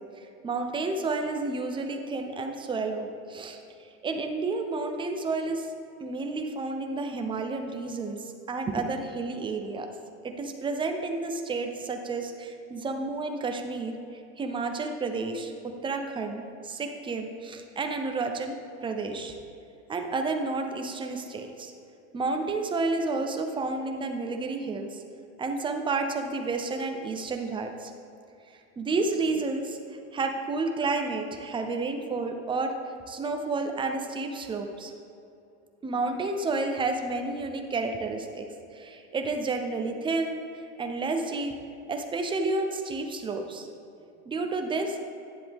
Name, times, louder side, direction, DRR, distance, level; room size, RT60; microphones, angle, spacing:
voice 1, 0.2-5.7 6.0-9.9 10.2-13.9 14.4-18.6 18.8-19.4 19.9-21.7 22.1-25.0 25.4-27.9 28.8-29.8 30.1-32.8 33.1-34.9 35.8-41.5 41.9-43.7 44.3-45.0, right 3 dB, 15° right, 4 dB, 0.7 m, -31 dB
10.5 x 7.5 x 3.6 m, 2.7 s
supercardioid pair, 130°, 34 cm